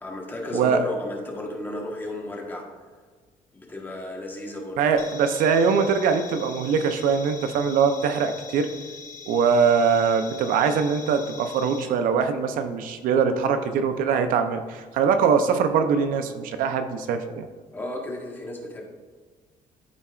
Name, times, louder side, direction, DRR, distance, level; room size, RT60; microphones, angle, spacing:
voice 1, 0.0-2.7 3.5-4.8 17.7-18.8, left 1 dB, 15° left, 0 dB, 1.2 m, -33 dB
voice 2, 4.8-8.7 9.3-17.5, right 6 dB, 80° right, 8 dB, 0.6 m, -22 dB
sound 1, 5.0-11.8, left 6 dB, 80° left, 1.3 m, -42 dB
12.5 x 4.3 x 2.4 m, 1.5 s
cardioid pair, 140°, 14 cm